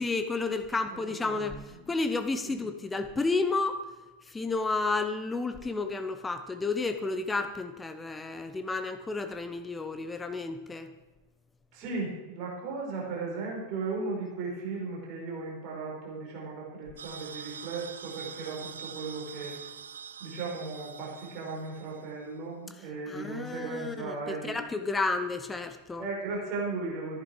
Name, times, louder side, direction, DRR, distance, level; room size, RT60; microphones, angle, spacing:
voice 1, 0.0-3.8 4.3-10.9 23.1-26.0, left 3 dB, 10° left, 9 dB, 0.9 m, -31 dB
voice 2, 0.7-1.5 2.5-2.6 11.7-19.6 20.2-24.6 26.0-27.2, right 3 dB, 40° right, -3 dB, 5.1 m, -36 dB
sound 1, 17.0-22.2, right 7 dB, 65° right, 0.6 m, -44 dB
14.5 x 11.0 x 4.8 m, 1.2 s
figure-of-eight pair, 90°, 0 cm